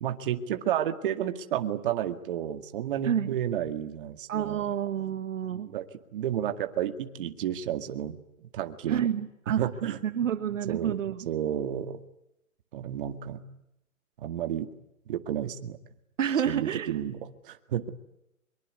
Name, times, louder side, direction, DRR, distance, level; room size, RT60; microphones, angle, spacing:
voice 1, 0.0-4.7 5.5-5.9 6.1-9.1 9.5-10.0 10.7-11.0 11.3-12.0 12.7-13.4 14.2-14.7 15.1-15.8 16.5-17.9, right 10 dB, 40° right, 8 dB, 2.1 m, -31 dB
voice 2, 3.0-3.3 4.3-5.7 8.9-9.6 10.0-11.3 16.2-16.9, right 9 dB, 65° right, 11 dB, 1.7 m, -29 dB
23.5 x 23.0 x 9.5 m, 0.84 s
hypercardioid pair, 160°, 41 cm